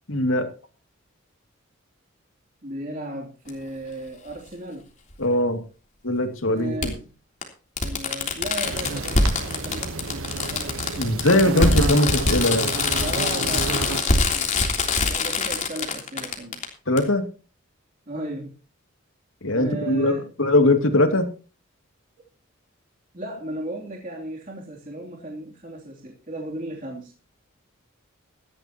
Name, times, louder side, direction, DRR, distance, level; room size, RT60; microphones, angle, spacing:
voice 1, 0.1-0.5 5.2-5.6 6.0-6.9 11.0-12.7 16.9-17.3 19.4-21.3, left 1 dB, 70° left, 7 dB, 2.5 m, -21 dB
voice 2, 2.6-4.9 6.5-7.1 7.8-11.2 13.0-16.6 18.1-18.5 19.5-20.3 23.1-27.1, right 1 dB, 40° right, -2 dB, 3.0 m, -35 dB
Fireworks, 3.5-3.6 5.1-5.2 6.8-6.9 7.4-7.5 7.8-16.6 17.0-17.1, left 3 dB, 35° left, 3.3 m, -23 dB
sound 1, 8.6-14.0, right 3 dB, 75° right, 1.2 m, -30 dB
18.0 x 13.5 x 3.0 m, 0.35 s
head